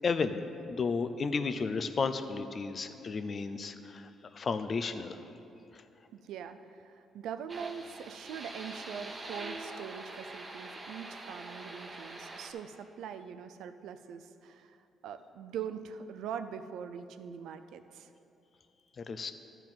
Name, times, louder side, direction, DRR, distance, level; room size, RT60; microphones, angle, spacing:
voice 1, 0.0-4.1 4.3-5.2 19.0-19.3, left 4 dB, 45° left, 9 dB, 0.6 m, -33 dB
voice 2, 6.1-18.1, right 7 dB, 80° right, 9 dB, 0.5 m, -42 dB
sound 1, 7.5-12.5, right 2 dB, 30° right, 1.1 m, -44 dB
12.0 x 4.6 x 7.4 m, 2.8 s
cardioid pair, 90°, 0 cm